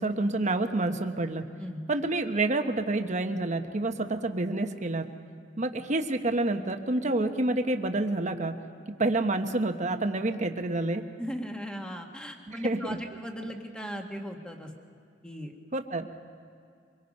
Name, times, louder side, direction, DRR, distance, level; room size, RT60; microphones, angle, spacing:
voice 1, 0.0-1.5 1.9-5.1 5.6-8.6 9.0-11.0 12.5-13.0 15.7-16.1, right 2 dB, 40° right, 6 dB, 1.1 m, -28 dB
voice 2, 11.2-14.7 15.2-15.5, equal, 5° left, 2 dB, 1.6 m, -38 dB
24.5 x 22.5 x 5.4 m, 2.4 s
head